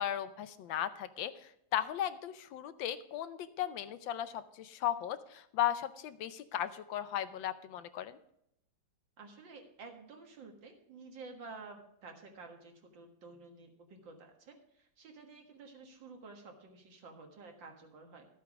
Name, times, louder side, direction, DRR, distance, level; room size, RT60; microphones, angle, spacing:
voice 1, 0.0-8.2, left 11 dB, 75° left, 12 dB, 1.4 m, -36 dB
voice 2, 9.2-18.3, right 3 dB, 70° right, 3 dB, 2.3 m, -51 dB
13.0 x 8.3 x 4.8 m, 0.75 s
omnidirectional pair, 2.1 m